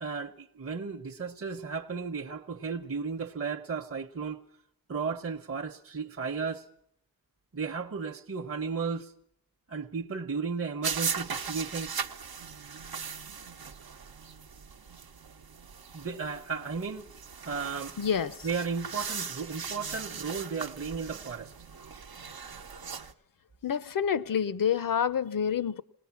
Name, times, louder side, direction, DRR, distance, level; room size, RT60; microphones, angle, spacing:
voice 1, 0.0-4.4 4.9-6.6 7.5-9.1 9.7-12.0 15.9-17.1 17.4-18.0 18.4-21.5, right 5 dB, 40° right, 0.8 m, -34 dB
sound 1, 10.8-23.1, right 6 dB, 80° right, 0.9 m, -39 dB
voice 2, 18.0-18.5 23.6-25.8, left 8 dB, 65° left, 0.8 m, -28 dB
20.5 x 18.0 x 7.1 m
wide cardioid pair, 120°, 36 cm